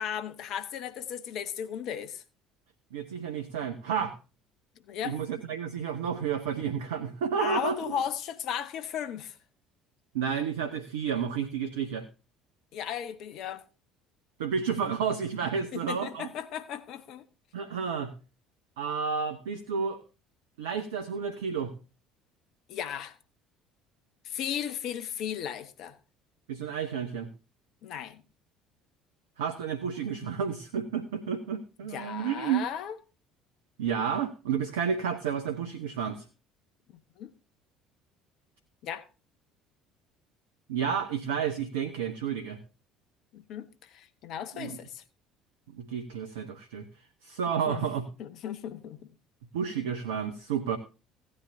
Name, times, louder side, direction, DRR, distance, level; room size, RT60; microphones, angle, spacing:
voice 1, 0.0-2.2 4.9-5.2 7.4-9.3 12.7-13.6 15.7-17.2 22.7-23.1 24.2-26.0 27.8-28.2 31.9-33.0 36.9-37.3 38.8-39.0 43.3-45.0 47.6-47.8 48.2-49.0, left 9 dB, 55° left, 1.0 m, -36 dB
voice 2, 2.9-4.2 5.0-7.9 10.1-12.1 14.4-16.3 17.5-18.1 18.8-20.0 20.6-21.7 26.5-27.3 29.4-32.6 33.8-36.2 40.7-42.6 44.5-44.8 45.7-46.9 47.2-48.1 49.5-50.8, right 7 dB, 70° right, 0.8 m, -31 dB
16.5 x 9.8 x 2.7 m
figure-of-eight pair, 60°, 0 cm